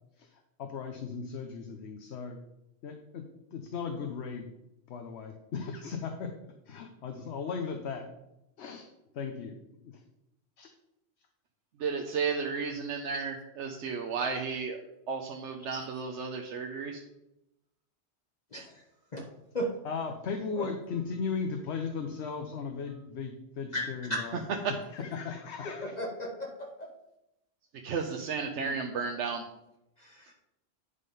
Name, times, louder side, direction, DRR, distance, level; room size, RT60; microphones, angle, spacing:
voice 1, 0.6-2.4 2.8-3.2 3.5-4.5 4.9-6.3 6.7-8.1 8.6-8.9 9.1-9.6 9.8-10.0 10.6-10.7 19.8-24.4 24.9-25.9, left 5 dB, 70° left, 5 dB, 1.0 m, -37 dB
voice 2, 11.8-17.0 24.6-24.7 27.8-29.4, right 5 dB, 80° right, 3 dB, 1.0 m, -33 dB
voice 3, 23.7-24.3 25.6-26.9 28.6-28.7 30.0-30.3, equal, 40° left, -1 dB, 1.1 m, -36 dB
9.9 x 3.7 x 5.4 m, 0.87 s
omnidirectional pair, 1.2 m